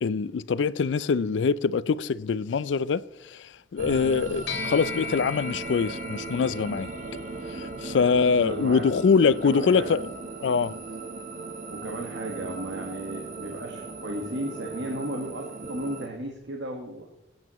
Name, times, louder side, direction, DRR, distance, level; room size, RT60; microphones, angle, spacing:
voice 1, 0.0-6.9 7.5-10.1 10.4-10.7, left 5 dB, 85° left, 0.4 m, -24 dB
sound 1, 3.8-16.1, right 3 dB, 45° right, 0.9 m, -37 dB
sound 2, 4.5-14.1, left 6 dB, 70° left, 1.3 m, -42 dB
voice 2, 8.4-8.9 9.4-9.9 11.7-17.1, right 1 dB, 85° right, 1.5 m, -34 dB
20.0 x 8.9 x 3.0 m
head